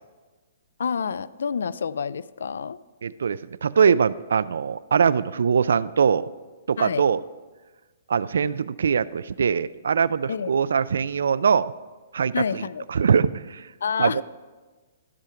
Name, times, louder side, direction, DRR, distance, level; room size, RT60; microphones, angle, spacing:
voice 1, 0.8-2.8 6.8-7.0 10.3-10.5 12.3-12.9 13.8-14.2, left 6 dB, 80° left, 19 dB, 0.3 m, -28 dB
voice 2, 3.0-6.3 6.7-7.2 8.1-11.7 12.1-12.6 12.9-13.7 14.0-14.2, right 6 dB, 80° right, 17 dB, 0.3 m, -22 dB
13.5 x 5.0 x 5.7 m, 1.3 s
hypercardioid pair, 180°, 0 cm